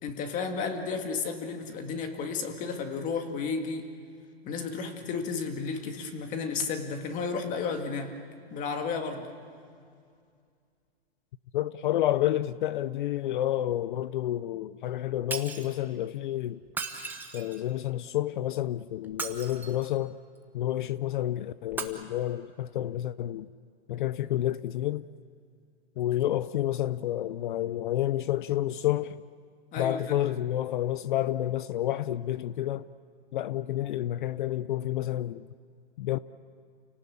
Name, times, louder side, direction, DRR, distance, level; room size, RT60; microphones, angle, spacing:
voice 1, 0.0-3.9 4.4-8.2 8.5-9.3 29.7-30.2, left 5 dB, 25° left, 2.1 m, -33 dB
voice 2, 11.5-16.6 17.3-20.2 20.5-23.5 23.9-25.1 26.0-29.2 29.8-32.9 33.3-35.5 36.0-36.2, left 13 dB, 50° left, 0.6 m, -29 dB
Shatter, 15.3-15.7 16.7-17.7 19.0-20.0 21.7-21.8, right 4 dB, 5° right, 1.1 m, -36 dB
29.5 x 18.5 x 8.6 m
hypercardioid pair, 150°, 31 cm